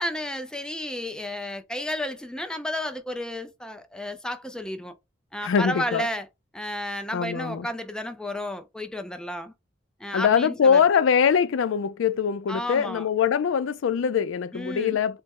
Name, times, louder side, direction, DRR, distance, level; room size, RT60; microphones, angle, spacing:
voice 1, 0.0-4.9 5.3-6.3 6.5-9.5 10.0-10.8 12.5-13.1 14.5-15.0, left 1 dB, 5° left, 0.3 m, -32 dB
voice 2, 5.4-6.1 7.1-7.7 10.1-15.2, left 7 dB, 85° left, 0.4 m, -23 dB
4.3 x 2.0 x 3.5 m
head